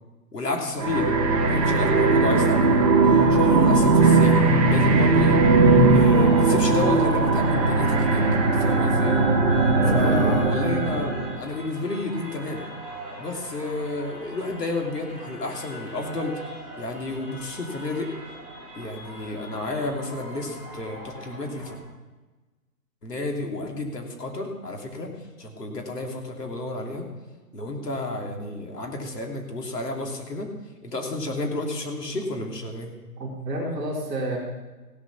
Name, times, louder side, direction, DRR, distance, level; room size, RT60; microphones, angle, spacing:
voice 1, 0.3-1.1 1.4-5.4 5.9-8.2 8.5-9.2 9.9-12.7 13.2-16.4 16.8-18.1 18.8-21.7 23.0-25.1 25.4-27.0 27.5-30.5 30.8-32.9, left 2 dB, 75° left, 1 dB, 2.9 m, -31 dB
sound 1, 0.8-11.4, right 3 dB, 25° right, 1.4 m, -19 dB
sound 2, 3.1-21.8, right 1 dB, 15° left, 2.9 m, -41 dB
voice 2, 9.8-10.4 33.2-34.4, right 1 dB, 5° right, -11 dB, 2.3 m, -29 dB
16.0 x 7.5 x 6.0 m, 1.2 s
hypercardioid pair, 175°, 48 cm